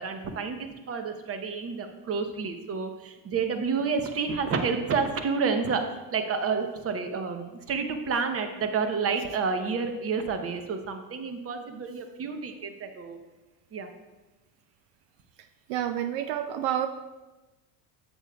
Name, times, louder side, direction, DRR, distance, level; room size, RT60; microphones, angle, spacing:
voice 1, 0.0-13.2 13.7-13.9, right 5 dB, 30° right, 7 dB, 0.9 m, -30 dB
voice 2, 15.7-16.9, right 11 dB, 70° right, 9 dB, 0.5 m, -28 dB
8.7 x 8.0 x 2.3 m, 1.1 s
supercardioid pair, 105°, 47 cm